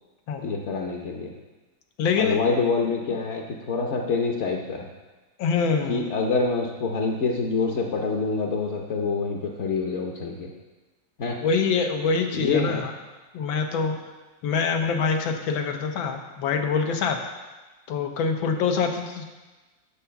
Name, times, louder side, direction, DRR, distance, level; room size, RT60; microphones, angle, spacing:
voice 1, 0.4-1.3 2.2-4.9 5.9-10.5 11.2-11.4 12.3-12.9, left 4 dB, 50° left, -1 dB, 0.9 m, -26 dB
voice 2, 2.0-2.4 5.4-6.1 11.4-12.9 13.3-14.0 14.4-17.2 17.9-19.2, left 5 dB, 90° left, 5 dB, 1.7 m, -25 dB
8.5 x 7.0 x 5.7 m, 1.2 s
omnidirectional pair, 2.1 m